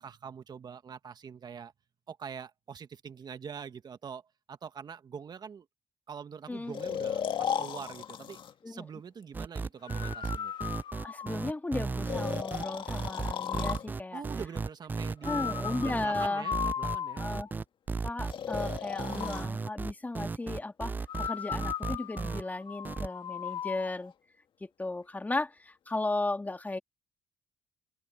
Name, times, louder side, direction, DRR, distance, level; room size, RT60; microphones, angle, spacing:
voice 1, 0.0-1.7 2.1-4.2 4.5-5.6 6.1-8.4 8.7-10.5 14.1-15.5 15.8-17.3, right 7 dB, 40° right, 1.5 m, -44 dB
voice 2, 6.5-6.8 8.6-8.8 11.0-14.2 15.2-16.5 17.2-17.5 18.0-20.9 21.2-24.1 24.6-26.8, left 2 dB, 15° left, 2.0 m, -35 dB
Breathing, 6.7-8.5 9.9-11.5 12.1-13.9 15.2-17.5 18.3-19.5 21.1-23.9, left 8 dB, 50° left, 1.9 m, -36 dB
sound 1, 9.3-22.4 22.9-23.1, right 4 dB, 20° right, 0.3 m, -35 dB
open air
supercardioid pair, 80°, 10 cm